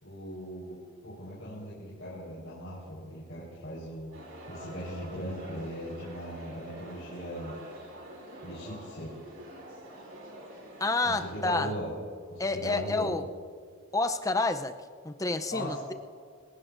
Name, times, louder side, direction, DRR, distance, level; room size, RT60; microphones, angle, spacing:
voice 1, 0.0-4.1 4.5-7.6 8.4-9.1 11.0-11.9 12.3-13.1 15.5-15.8, equal, 60° left, -7 dB, 4.4 m, -39 dB
sound 1, 4.1-11.6, right 1 dB, 65° right, 4.3 m, -46 dB
voice 2, 10.8-11.7 12.4-13.3 13.9-14.7 15.0-15.9, left 3 dB, 15° left, 7 dB, 0.6 m, -29 dB
27.5 x 16.5 x 2.7 m, 2.1 s
head